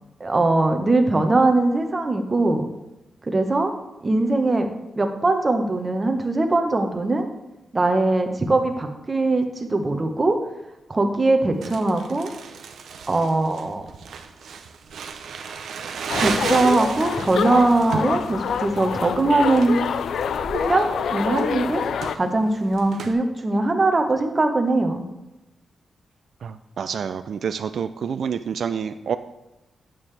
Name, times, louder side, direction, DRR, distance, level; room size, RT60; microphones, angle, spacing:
voice 1, 0.2-2.7 3.3-3.7 4.0-4.7 5.0-7.3 7.7-10.4 10.9-12.3 13.1-13.8 16.2-19.8 20.5-21.8 22.1-25.0, right 2 dB, 25° right, 5 dB, 0.9 m, -21 dB
Crumpling crinkling, 11.6-23.1, right 6 dB, 85° right, 0.7 m, -34 dB
sound 1, 16.1-22.2, left 7 dB, 80° left, 0.3 m, -26 dB
voice 2, 26.4-29.2, right 7 dB, 70° right, 10 dB, 0.3 m, -28 dB
9.3 x 7.4 x 3.3 m, 0.97 s
wide cardioid pair, 130°, 0 cm